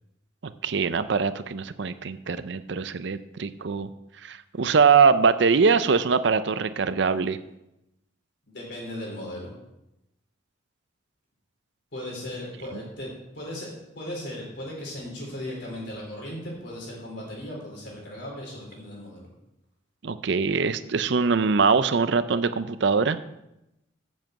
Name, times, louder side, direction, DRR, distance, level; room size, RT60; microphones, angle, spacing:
voice 1, 0.6-3.9 4.2-7.4 20.0-23.2, right 5 dB, 60° right, 13 dB, 0.5 m, -22 dB
voice 2, 8.5-9.5 11.9-13.7 13.9-19.3, left 1 dB, 60° left, -2 dB, 4.4 m, -37 dB
7.5 x 7.5 x 7.7 m, 0.89 s
head